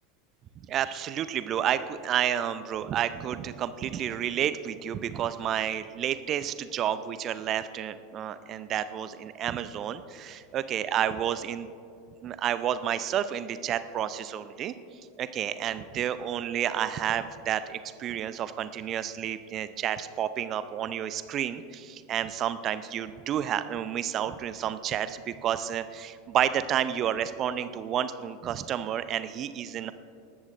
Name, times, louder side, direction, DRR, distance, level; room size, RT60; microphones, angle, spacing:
voice 1, 0.7-11.7 12.2-14.7 15.2-29.9, right 10 dB, 35° right, 13 dB, 0.5 m, -30 dB
19.5 x 13.5 x 2.6 m, 2.5 s
figure-of-eight pair, 80°, 0 cm